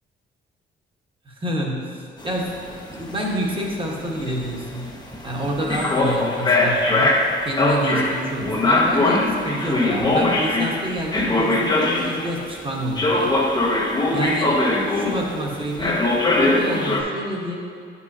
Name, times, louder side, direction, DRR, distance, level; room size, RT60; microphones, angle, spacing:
voice 1, 1.2-2.5 2.9-4.9 5.2-7.1 7.4-13.4 14.1-14.6 14.9-16.0 16.4-17.6, right 1 dB, 25° right, -2 dB, 1.3 m, -28 dB
sound 1, 2.2-12.4 13.0-15.4 15.8-17.0, left 2 dB, 20° left, 0.8 m, -21 dB
8.6 x 5.6 x 2.8 m, 2.4 s
cardioid pair, 90°, 20 cm